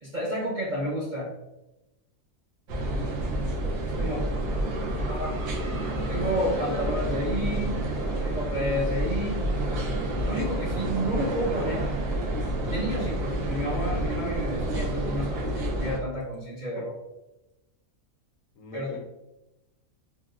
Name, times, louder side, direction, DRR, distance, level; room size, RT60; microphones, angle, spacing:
voice 1, 0.0-1.3 4.0-4.2 5.1-5.4 6.1-7.8 8.2-9.4 10.2-11.9 12.7-16.9 18.7-18.9, equal, 55° right, -5 dB, 0.5 m, -30 dB
sound 1, 2.7-16.0, right 1 dB, 90° right, 1.1 m, -29 dB
voice 2, 4.0-4.5 4.9-5.1 16.8-16.9 18.6-19.0, left 3 dB, 75° left, 3 dB, 0.9 m, -42 dB
3.6 x 2.2 x 2.3 m, 0.96 s
omnidirectional pair, 1.4 m